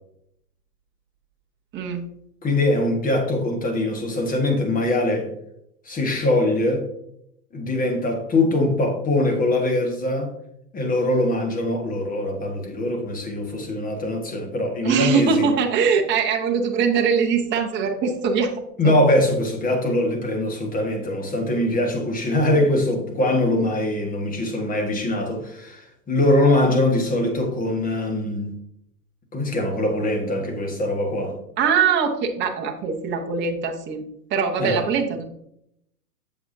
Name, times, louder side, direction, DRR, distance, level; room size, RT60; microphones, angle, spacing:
voice 1, 1.7-2.1 14.8-18.5 18.8-18.9 31.6-34.0 34.3-35.2, right 6 dB, 25° right, 1.0 m, -22 dB
voice 2, 2.4-5.3 5.8-6.8 7.5-10.3 10.7-15.5 18.8-28.5 29.3-31.4 34.6-34.8, left 1 dB, 15° left, 1.6 m, -22 dB
8.1 x 7.3 x 2.7 m
hypercardioid pair, 125°, 48 cm